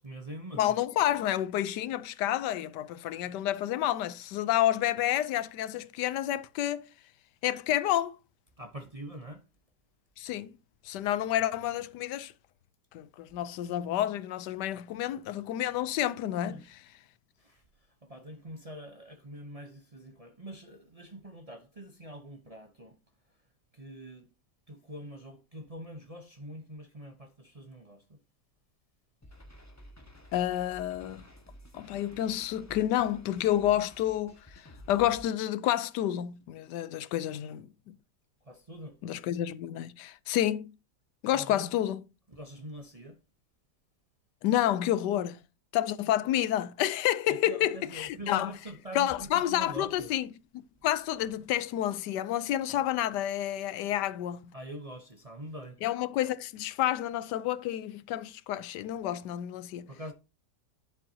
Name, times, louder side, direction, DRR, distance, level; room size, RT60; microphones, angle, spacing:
voice 1, 0.0-1.2 8.6-9.4 16.5-16.7 17.4-23.0 23.7-24.3 24.7-28.2 38.4-39.0 41.3-41.7 42.3-43.2 47.3-50.1 54.5-55.8 59.9-60.1, right 1 dB, 30° right, 0.7 m, -44 dB
voice 2, 0.6-6.9 7.4-8.2 10.2-10.5 10.8-12.3 12.9-16.6 30.3-31.2 31.7-38.0 39.0-40.7 41.2-42.0 44.4-45.4 45.7-48.5 48.9-50.3 50.5-54.4 55.8-59.9, left 12 dB, 85° left, 1.2 m, -29 dB
sound 1, 29.2-35.2, equal, 10° left, 1.1 m, -52 dB
11.0 x 7.2 x 2.8 m
omnidirectional pair, 1.8 m